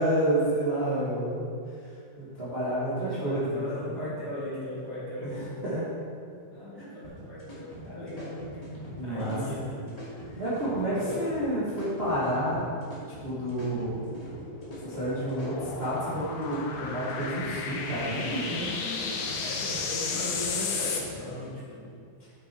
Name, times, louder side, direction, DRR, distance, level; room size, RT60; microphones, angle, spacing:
voice 1, 0.0-1.5 2.2-3.6 5.2-5.9 6.8-6.9 9.0-9.4 10.3-12.7 13.2-14.0 14.8-18.7, right 1 dB, 25° right, -10 dB, 1.6 m, -29 dB
voice 2, 3.0-5.7 6.5-10.4 10.9-11.3 18.8-21.9, left 1 dB, 35° left, -9 dB, 2.5 m, -38 dB
sound 1, 7.0-21.5, equal, 15° left, 1.9 m, -44 dB
sound 2, 13.7-21.0, left 5 dB, 75° left, 2.3 m, -34 dB
8.9 x 7.5 x 4.6 m, 2.3 s
omnidirectional pair, 3.4 m